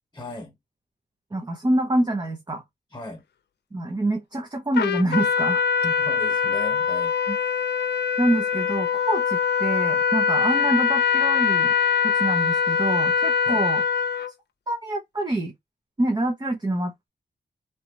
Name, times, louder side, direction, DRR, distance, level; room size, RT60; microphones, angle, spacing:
voice 1, 0.1-0.5 2.9-3.2 5.8-7.1 13.5-13.6, left 2 dB, 15° left, 1.1 m, -36 dB
voice 2, 1.3-2.6 3.7-5.6 7.3-7.4 8.2-11.7 12.0-13.8 14.7-15.5 16.0-17.1, right 1 dB, 25° right, 0.8 m, -26 dB
Trumpet, 4.7-14.3, left 6 dB, 85° left, 0.6 m, -23 dB
3.3 x 2.9 x 4.2 m
wide cardioid pair, 105°, 17 cm